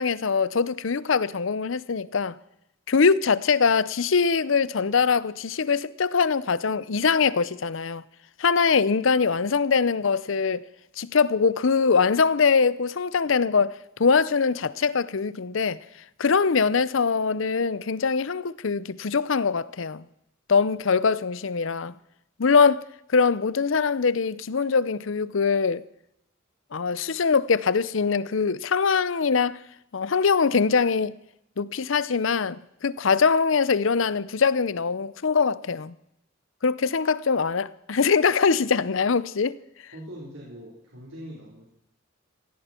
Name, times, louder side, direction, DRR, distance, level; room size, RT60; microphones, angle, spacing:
voice 1, 0.0-2.4 2.9-8.0 8.4-10.7 11.0-15.8 16.2-20.0 20.5-21.9 22.4-22.8 23.1-25.8 26.7-29.6 29.9-31.1 31.6-35.9 36.6-39.6, left 5 dB, 75° left, 0.6 m, -23 dB
voice 2, 39.9-41.7, equal, 75° right, 4.0 m, -42 dB
17.0 x 16.5 x 4.4 m
head